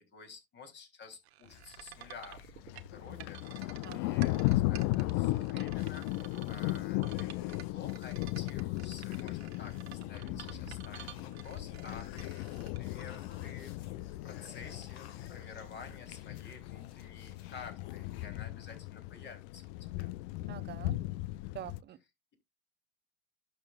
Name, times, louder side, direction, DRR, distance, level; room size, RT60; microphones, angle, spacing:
voice 1, 0.1-2.4 2.7-12.5 12.8-13.7 14.2-20.1, left 5 dB, 35° left, 3.4 m, -51 dB
sound 1, 1.3-13.8, right 14 dB, 80° right, 1.0 m, -51 dB
sound 2, 1.4-18.3, left 6 dB, 70° left, 1.6 m, -55 dB
Thunder, 2.6-21.8, left 18 dB, 55° left, 0.4 m, -36 dB
voice 2, 3.8-4.2 6.5-6.8 20.5-21.0 21.5-22.0, right 12 dB, 35° right, 0.8 m, -46 dB
11.5 x 6.5 x 2.4 m
hypercardioid pair, 85°, 31 cm